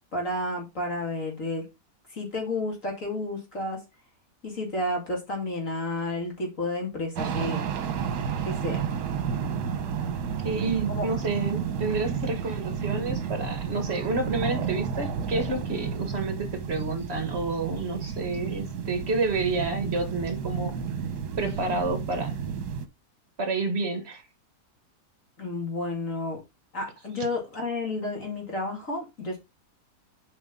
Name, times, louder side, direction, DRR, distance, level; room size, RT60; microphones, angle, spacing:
voice 1, 0.1-1.7 2.1-3.8 4.4-7.7 8.4-8.8 10.9-11.1 25.4-26.4 26.7-29.4, left 2 dB, 50° left, 2.9 m, -31 dB
sound 1, 7.2-22.9, right 7 dB, 70° right, 1.4 m, -31 dB
voice 2, 10.4-20.8 21.4-22.4 23.4-24.2, right 3 dB, 40° right, 1.6 m, -29 dB
7.6 x 5.2 x 3.7 m
omnidirectional pair, 1.8 m